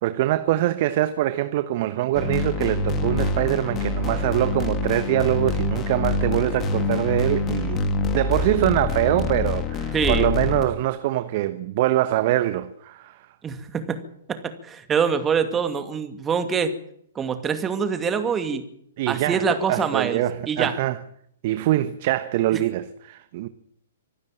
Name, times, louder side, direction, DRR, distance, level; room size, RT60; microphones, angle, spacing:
voice 1, 0.0-7.9 8.1-13.3 19.0-21.0 21.4-23.5, right 14 dB, 45° right, 1.1 m, -24 dB
sound 1, 2.1-10.7, left 3 dB, 25° left, 2.7 m, -26 dB
voice 2, 9.9-10.3 13.4-14.0 14.3-16.7 17.2-18.6 19.1-20.2 20.5-20.7, right 6 dB, 15° right, 2.4 m, -24 dB
25.5 x 12.5 x 9.0 m
figure-of-eight pair, 115°, 0 cm